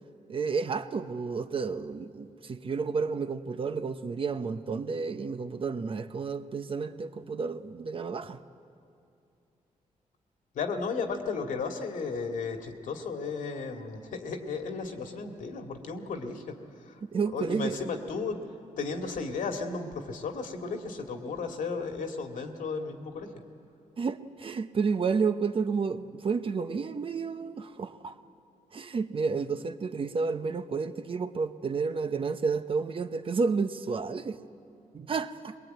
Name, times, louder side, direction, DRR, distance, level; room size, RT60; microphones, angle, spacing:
voice 1, 0.3-8.4 17.0-17.8 24.0-28.2 28.7-34.4 34.9-35.6, right 5 dB, 40° right, 0.9 m, -31 dB
voice 2, 10.5-17.0 17.3-18.4 18.8-23.3, left 4 dB, 80° left, 2.2 m, -34 dB
22.0 x 21.5 x 9.2 m
cardioid pair, 105°, 13 cm